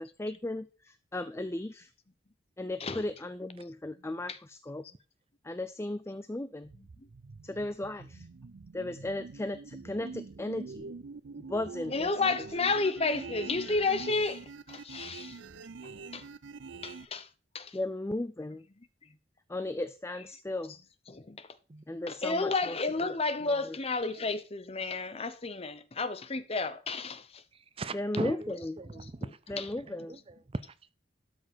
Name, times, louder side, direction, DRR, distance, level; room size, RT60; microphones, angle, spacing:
voice 1, 0.0-1.9 2.6-4.8 5.4-6.7 7.4-8.3 8.7-10.9 11.5-12.3 17.7-18.7 19.5-20.8 21.9-23.2 23.5-23.8 27.9-28.8 29.5-30.2, left 1 dB, 15° left, 0.5 m, -36 dB
sound 1, 6.6-17.1, right 4 dB, 85° right, 0.6 m, -45 dB
voice 2, 11.9-15.4 16.1-16.2 16.8-17.3 17.5-17.8 21.1-21.5 22.1-27.4, left 3 dB, 35° left, 0.9 m, -31 dB
voice 3, 23.8-24.2 27.5-29.6 30.1-30.9, right 3 dB, 30° right, 0.6 m, -40 dB
12.5 x 6.3 x 4.5 m
head